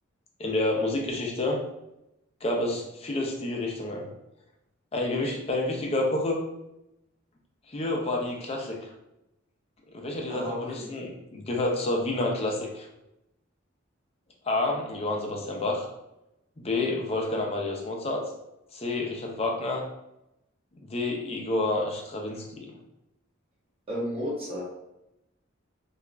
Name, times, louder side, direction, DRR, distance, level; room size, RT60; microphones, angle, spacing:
voice 1, 0.4-1.6 2.4-4.1 4.9-6.4 7.7-8.8 9.9-12.9 14.4-15.9 16.6-18.2 18.7-19.8 20.8-22.7, left 2 dB, 30° left, 0 dB, 0.5 m, -29 dB
voice 2, 10.3-10.9 23.9-24.6, equal, 30° right, -6 dB, 0.7 m, -32 dB
2.8 x 2.4 x 2.2 m, 0.87 s
head